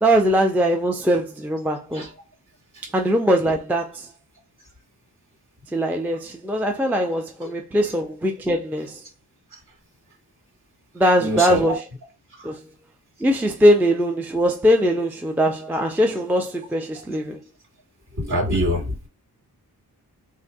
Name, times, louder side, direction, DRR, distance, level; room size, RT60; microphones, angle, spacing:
voice 1, 0.0-2.1 2.9-4.1 5.7-9.0 11.0-11.8 12.4-12.6 13.2-17.4, equal, 5° right, 0.4 m, -21 dB
voice 2, 11.2-11.7 12.3-12.6 18.1-19.1, equal, 55° right, 2.5 m, -26 dB
3.6 x 2.5 x 4.6 m
wide cardioid pair, 180°, 38 cm